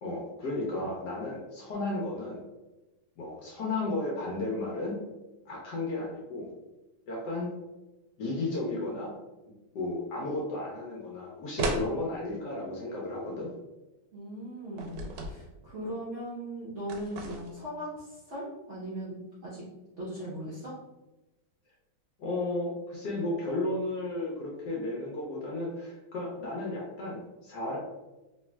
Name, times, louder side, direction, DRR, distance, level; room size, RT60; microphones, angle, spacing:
voice 1, 0.0-2.4 3.2-5.0 5.5-6.5 7.1-7.5 8.2-9.1 9.7-13.5 22.2-27.8, left 2 dB, 70° left, -3 dB, 1.1 m, -33 dB
sound 1, 11.6-11.9 14.8-15.4 16.9-17.6, right 2 dB, 80° right, 1.4 m, -33 dB
voice 2, 14.1-19.6 20.0-20.7, right 1 dB, 60° right, -9 dB, 0.7 m, -39 dB
3.1 x 3.1 x 2.2 m, 1.1 s
omnidirectional pair, 2.3 m